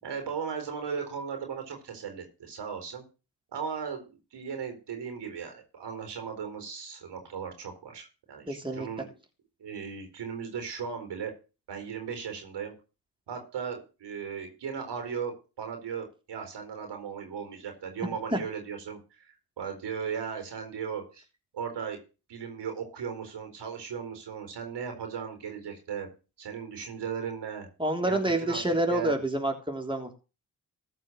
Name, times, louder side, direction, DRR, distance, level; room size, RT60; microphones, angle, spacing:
voice 1, 0.0-3.0 3.5-9.1 9.6-11.3 11.7-12.7 13.3-21.2 21.5-22.0 22.3-26.1 26.4-27.7 28.0-28.6 28.9-29.2, right 6 dB, 75° right, 5 dB, 4.5 m, -37 dB
voice 2, 8.5-8.9 18.0-18.4 27.8-30.2, right 1 dB, 10° right, 4 dB, 3.4 m, -28 dB
14.5 x 5.6 x 6.4 m, 0.32 s
supercardioid pair, 50°, 41 cm